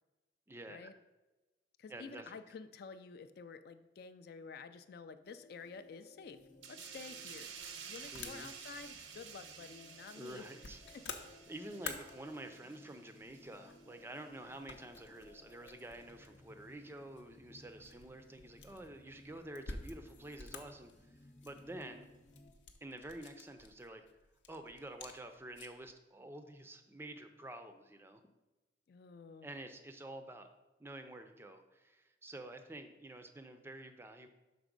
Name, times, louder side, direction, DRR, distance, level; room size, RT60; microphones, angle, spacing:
voice 1, 0.5-0.9 1.9-2.4 8.1-8.5 10.1-10.8 11.5-21.1 21.4-22.1 22.8-24.1 24.5-28.2 29.4-30.5 30.8-34.3, right 1 dB, 15° right, 7 dB, 0.4 m, -49 dB
voice 2, 1.8-6.4 6.7-7.5 7.9-10.4 10.9-11.0 28.9-29.5, left 5 dB, 55° left, 11 dB, 0.3 m, -50 dB
sound 1, 5.2-22.5, left 1 dB, 40° left, 0.8 m, -61 dB
sound 2, 6.3-25.9, left 4 dB, 85° left, 0.7 m, -53 dB
sound 3, 6.6-13.8 14.2-14.4, right 7 dB, 90° right, 0.7 m, -52 dB
6.0 x 4.1 x 5.2 m, 1.1 s
head